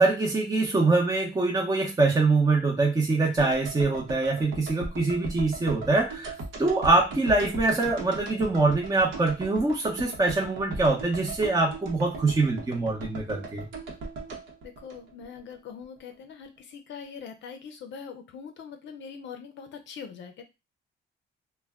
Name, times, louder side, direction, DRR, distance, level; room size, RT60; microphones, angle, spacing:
voice 1, 0.0-6.3 6.6-13.6, right 3 dB, 20° right, -1 dB, 0.7 m, -24 dB
sound 1, 3.4-15.6 15.8-15.9, right 3 dB, 75° right, 0.9 m, -38 dB
voice 2, 14.6-20.4, left 6 dB, 65° left, 6 dB, 0.5 m, -42 dB
2.2 x 2.2 x 3.5 m, 0.26 s
cardioid pair, 90°, 20 cm